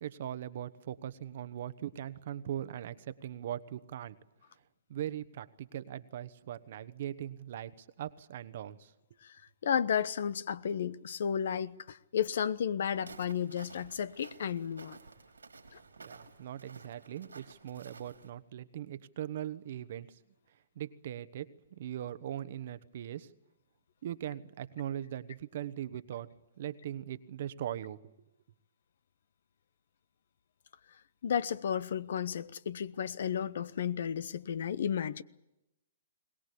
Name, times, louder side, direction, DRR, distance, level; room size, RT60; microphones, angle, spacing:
voice 1, 0.0-4.2 4.9-8.9 16.0-20.2 20.7-21.5 21.8-23.3 24.0-26.3 26.6-28.2, right 11 dB, 55° right, 1.1 m, -40 dB
voice 2, 9.6-15.0 31.2-35.2, left 8 dB, 65° left, 0.9 m, -33 dB
Walk footsteps, 12.9-18.3, right 4 dB, 85° right, 3.3 m, -53 dB
22.0 x 19.5 x 8.4 m
hypercardioid pair, 125°, 0 cm